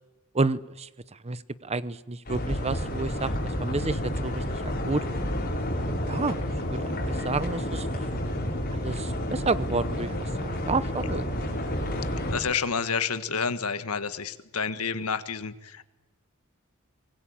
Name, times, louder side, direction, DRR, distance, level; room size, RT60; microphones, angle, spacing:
voice 1, 0.3-0.9 1.2-3.3 3.6-5.0 6.1-6.4 6.7-7.9 8.8-11.5, right 3 dB, 30° right, 16 dB, 0.8 m, -30 dB
sound 1, 2.3-12.4, equal, 40° left, 6.8 m, -30 dB
voice 2, 12.3-15.8, left 5 dB, 80° left, 11 dB, 1.6 m, -29 dB
24.0 x 20.5 x 8.7 m, 1.0 s
head